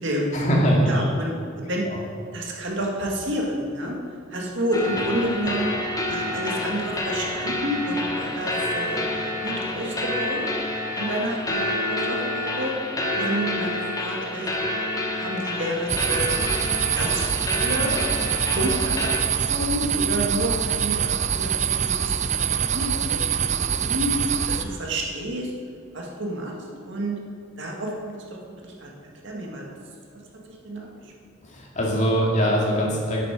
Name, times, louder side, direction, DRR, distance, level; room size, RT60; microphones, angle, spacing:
voice 1, 0.3-1.1 1.9-2.0 31.5-33.2, equal, 40° left, -3 dB, 2.4 m, -22 dB
voice 2, 0.8-1.8 2.3-4.0 4.3-5.7 6.1-10.5 11.0-12.7 13.1-14.5 15.1-17.9 18.5-19.1 19.5-24.2 24.5-25.5 25.9-26.5 26.9-27.1 27.6-28.1 28.6-28.9 29.2-29.8 30.6-31.1, right 1 dB, 65° right, -1 dB, 2.1 m, -29 dB
sound 1, 4.7-19.2, left 1 dB, 20° left, 1.1 m, -28 dB
sound 2, 15.9-24.6, right 8 dB, 35° right, 0.5 m, -24 dB
12.0 x 8.3 x 5.0 m, 2.4 s
head